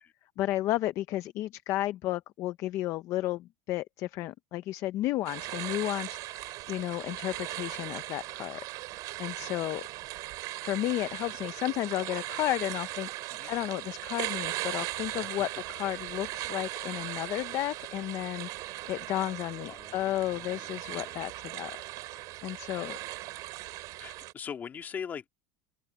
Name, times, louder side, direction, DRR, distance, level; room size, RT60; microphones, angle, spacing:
voice 1, 0.4-8.6 8.9-9.8 10.6-18.5 18.9-21.7 22.4-23.0, left 15 dB, 35° left, 0.6 m, -33 dB
sound 1, 5.3-24.3, right 18 dB, 45° right, 3.9 m, -38 dB
voice 2, 19.7-21.2 24.0-25.3, left 7 dB, 20° left, 2.1 m, -42 dB
open air
cardioid pair, 175°, 9 cm